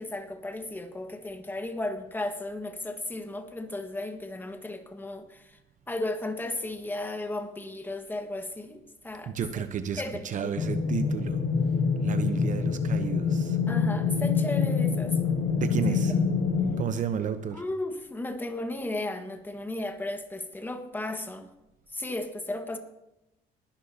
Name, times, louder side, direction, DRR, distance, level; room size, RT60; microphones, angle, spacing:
voice 1, 0.0-5.6 5.9-9.6 10.0-10.7 13.7-15.2 15.9-16.0 17.5-21.5 21.9-22.8, left 2 dB, 10° left, 6 dB, 1.6 m, -35 dB
voice 2, 9.3-11.4 12.0-13.6 15.6-16.2 16.8-17.6, right 7 dB, 50° right, 10 dB, 0.8 m, -32 dB
sound 1, 10.6-16.8, left 5 dB, 70° left, 1.9 m, -26 dB
20.0 x 11.5 x 2.8 m, 0.92 s
cardioid pair, 110°, 17 cm